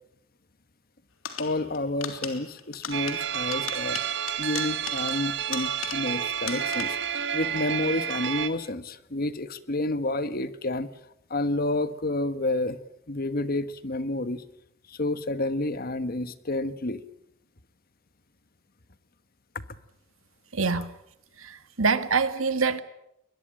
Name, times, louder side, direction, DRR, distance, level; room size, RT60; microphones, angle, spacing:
sound 1, 1.2-6.2 6.5-7.1, left 8 dB, 90° left, 3.3 m, -38 dB
voice 1, 1.4-4.0 4.4-7.0 7.3-10.9 11.3-12.8 13.1-14.4 14.9-17.0 19.5-19.6, left 2 dB, 45° left, 13 dB, 1.4 m, -29 dB
sound 2, 2.9-8.5, right 9 dB, 60° right, 1.9 m, -30 dB
voice 2, 20.5-20.9 21.4-22.8, right 4 dB, 80° right, 11 dB, 1.9 m, -25 dB
22.0 x 21.5 x 8.7 m, 0.78 s
head